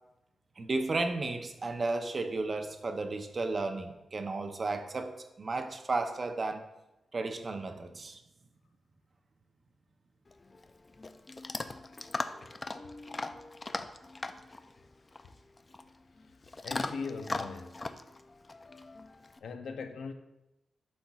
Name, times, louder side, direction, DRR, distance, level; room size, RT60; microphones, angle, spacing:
voice 1, 0.6-6.6 7.1-8.2, right 3 dB, 35° right, 6 dB, 0.6 m, -33 dB
Chewing mastication / Dog, 10.3-19.4, left 3 dB, 25° left, 0.3 m, -40 dB
voice 2, 16.6-17.8 19.4-20.1, left 4 dB, 80° left, 7 dB, 0.6 m, -40 dB
11.5 x 4.2 x 2.3 m, 0.97 s
wide cardioid pair, 130°, 0 cm